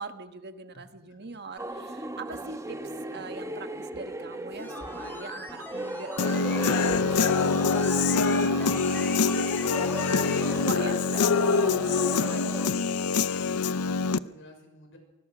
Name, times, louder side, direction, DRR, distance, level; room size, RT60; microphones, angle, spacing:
voice 1, 0.0-2.8 3.1-12.7, right 4 dB, 50° right, 8 dB, 1.4 m, -42 dB
voice 2, 0.7-1.5 13.6-15.0, left 2 dB, 60° left, 4 dB, 5.9 m, -52 dB
sound 1, 1.6-12.7, right 1 dB, 15° right, 1.4 m, -38 dB
sound 2, 4.5-10.6 10.9-11.0, left 1 dB, 10° left, 3.5 m, -42 dB
Human voice / Guitar, 6.2-14.2, left 4 dB, 85° left, 0.6 m, -25 dB
24.0 x 21.5 x 6.1 m, 1.1 s
head